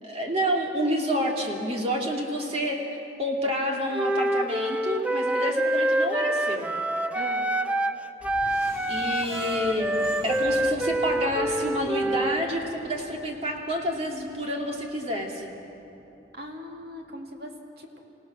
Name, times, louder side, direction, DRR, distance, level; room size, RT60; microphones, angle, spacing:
voice 1, 0.0-2.9 3.2-6.7 8.9-10.0 10.2-15.5, equal, 35° right, 0 dB, 2.3 m, -28 dB
Wind instrument woodwind instrument, 3.9-8.0 8.2-12.4, right 1 dB, 5° right, 0.4 m, -26 dB
voice 2, 7.1-7.5 16.3-18.0, equal, 55° right, 1 dB, 2.4 m, -40 dB
sound 1, 8.2-17.4, left 1 dB, 50° left, 2.8 m, -49 dB
Screech, 8.6-11.6 12.0-12.1 12.5-12.6, left 4 dB, 15° left, 2.4 m, -45 dB
28.0 x 17.5 x 6.2 m, 2.9 s
head